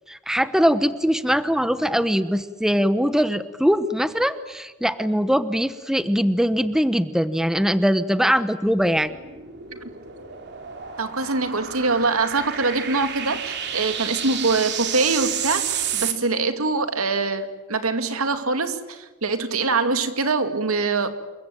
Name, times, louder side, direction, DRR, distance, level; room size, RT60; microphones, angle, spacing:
voice 1, 0.1-9.1, equal, ahead, 12 dB, 1.0 m, -21 dB
sound 1, 8.6-16.1, right 8 dB, 55° right, 3.2 m, -31 dB
voice 2, 11.0-21.1, right 3 dB, 85° right, 8 dB, 2.5 m, -24 dB
28.0 x 23.5 x 9.0 m, 1.2 s
head